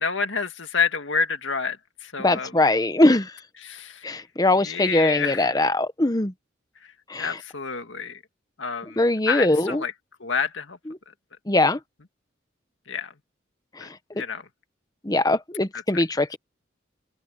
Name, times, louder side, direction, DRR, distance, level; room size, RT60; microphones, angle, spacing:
voice 1, 0.0-2.5 3.6-4.0 4.6-5.5 7.2-8.2 8.6-9.0 9.3-9.9 10.2-10.8 12.9-13.1 13.8-13.9 14.2-14.4 15.7-16.0, left 5 dB, 85° left, 2.0 m, -28 dB
voice 2, 2.2-3.4 4.0-6.3 7.1-7.4 8.8-9.8 10.9-11.0 11.5-11.8 13.8-14.2 15.0-16.4, left 2 dB, 20° left, 0.9 m, -22 dB
open air
head